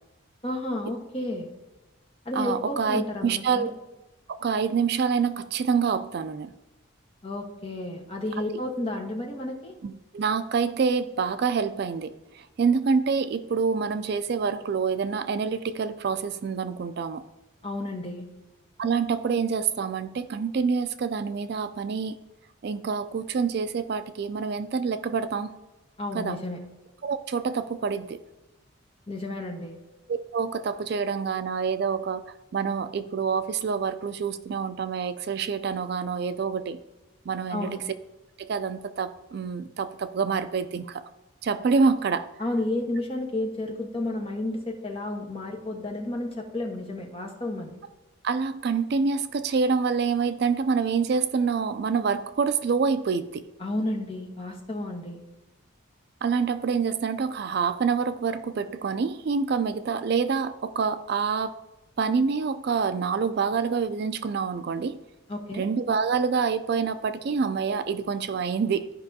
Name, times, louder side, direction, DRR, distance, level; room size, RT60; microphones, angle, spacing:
voice 1, 0.4-1.5 2.2-3.7 7.2-9.7 17.6-18.3 26.0-26.6 29.1-29.8 37.5-37.8 42.4-47.7 53.6-55.2 65.3-65.7, left 1 dB, 25° left, 1 dB, 1.1 m, -31 dB
voice 2, 2.3-3.7 4.4-6.5 9.8-17.2 18.8-22.2 22.6-25.5 26.1-26.4 27.0-28.2 30.1-32.2 32.5-36.8 37.3-37.8 38.4-41.0 41.4-42.3 48.2-53.4 56.2-61.6 62.0-65.0 65.5-68.9, right 5 dB, 50° right, 11 dB, 0.3 m, -27 dB
14.0 x 5.2 x 2.8 m, 1.1 s
head